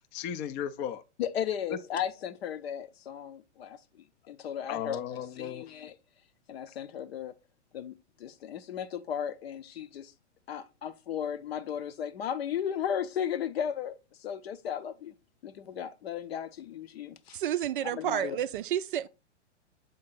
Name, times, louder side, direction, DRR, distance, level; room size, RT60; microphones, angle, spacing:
voice 1, 0.0-1.0 1.7-1.8 4.7-5.7, left 9 dB, 20° left, 0.4 m, -35 dB
voice 2, 1.2-5.0 5.4-5.9 6.5-7.4 7.7-10.1 10.5-15.1 15.4-17.4 17.8-18.4, left 9 dB, 60° left, 0.7 m, -35 dB
voice 3, 17.3-19.1, right 11 dB, 45° right, 0.4 m, -30 dB
7.8 x 3.5 x 3.9 m
figure-of-eight pair, 110°, 36 cm